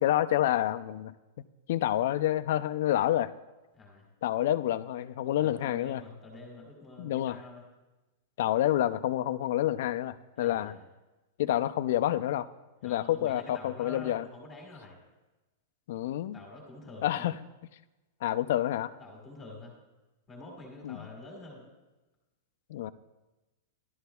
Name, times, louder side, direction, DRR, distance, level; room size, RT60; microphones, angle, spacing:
voice 1, 0.0-1.1 1.7-3.3 4.2-6.0 7.0-7.4 8.4-10.8 11.4-12.5 12.8-14.3 15.9-16.4 17.0-17.3 18.2-18.9 20.8-21.1 22.7-22.9, left 13 dB, 50° left, 13 dB, 0.4 m, -28 dB
voice 2, 3.7-4.0 5.4-7.6 10.3-10.8 12.8-15.0 16.3-17.3 19.0-19.8 20.3-21.6, left 2 dB, 10° left, -1 dB, 1.5 m, -47 dB
14.5 x 11.5 x 2.3 m, 1.1 s
supercardioid pair, 180°, 0 cm